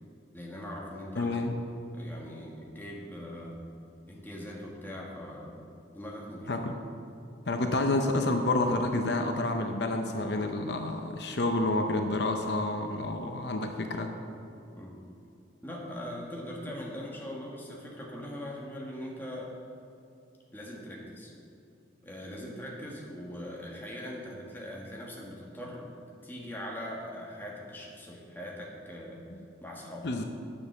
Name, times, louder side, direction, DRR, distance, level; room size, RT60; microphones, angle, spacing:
voice 1, 0.3-1.6 1.9-3.6 4.1-6.5 14.7-15.0 15.6-19.5 20.5-21.3 22.0-25.9 26.2-29.2 29.6-30.1, equal, 10° left, -3 dB, 1.5 m, -41 dB
voice 2, 1.2-1.5 6.5-6.8 7.5-14.1 29.3-29.4 30.0-30.2, left 2 dB, 65° left, 5 dB, 0.7 m, -29 dB
10.0 x 7.1 x 6.6 m, 2.6 s
head